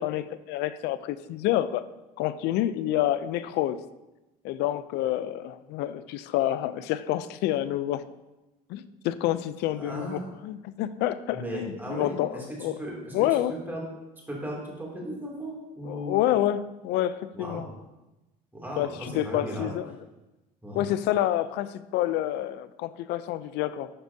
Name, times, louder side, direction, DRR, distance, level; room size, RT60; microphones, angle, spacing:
voice 1, 0.0-1.8 2.2-3.8 4.4-8.0 8.7-12.7 13.1-13.5 15.9-17.6 18.8-19.9 20.7-23.9, left 13 dB, 65° left, 14 dB, 0.4 m, -28 dB
voice 2, 9.7-10.2 11.3-13.1 13.5-13.8 14.3-16.1 17.3-17.6 18.5-19.7 20.6-20.8, equal, 10° right, -4 dB, 2.6 m, -36 dB
11.5 x 4.5 x 2.7 m, 1.0 s
supercardioid pair, 100°, 18 cm